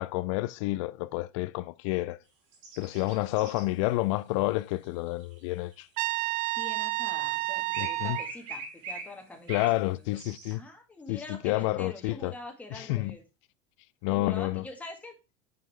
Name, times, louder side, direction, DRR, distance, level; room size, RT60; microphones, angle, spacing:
voice 1, 0.0-2.2 2.8-5.9 7.8-8.2 9.5-10.6 11.1-12.3 12.7-13.2 14.0-14.7, left 19 dB, 70° left, 0.4 m, -29 dB
sound 1, 2.5-3.7 4.5-6.5 7.7-9.8 10.2-10.5, right 4 dB, 80° right, 2.5 m, -42 dB
Trumpet, 6.0-8.3, right 19 dB, 55° right, 0.4 m, -30 dB
voice 2, 6.6-10.1 10.5-13.2 14.1-15.2, left 2 dB, 10° left, 1.7 m, -45 dB
5.5 x 5.4 x 3.2 m
supercardioid pair, 115°, 16 cm